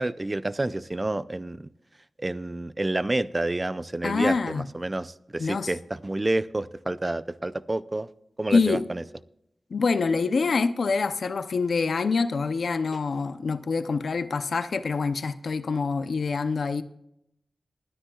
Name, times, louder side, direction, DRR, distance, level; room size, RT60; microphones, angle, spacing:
voice 1, 0.0-1.7 2.2-8.1 8.4-9.0, right 2 dB, 25° right, 0.4 m, -29 dB
voice 2, 4.0-4.7 5.4-5.7 8.5-8.8 9.7-16.8, left 4 dB, 75° left, 0.6 m, -25 dB
27.5 x 10.0 x 2.3 m
wide cardioid pair, 70°, 0 cm